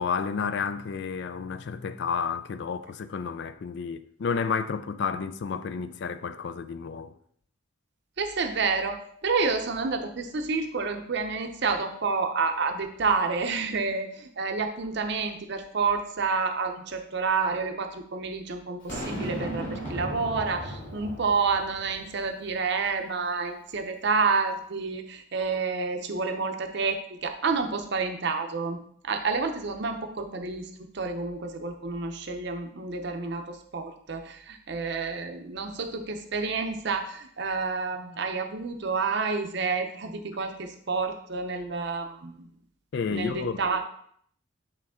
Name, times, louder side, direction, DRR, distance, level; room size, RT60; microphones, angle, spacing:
voice 1, 0.0-7.1 42.9-43.6, left 5 dB, 55° left, 0.3 m, -31 dB
voice 2, 8.2-28.8 29.0-42.5 43.1-43.8, right 4 dB, 55° right, 0.7 m, -29 dB
Boom, 18.9-22.2, equal, 40° left, 2.1 m, -36 dB
8.5 x 3.2 x 3.7 m
head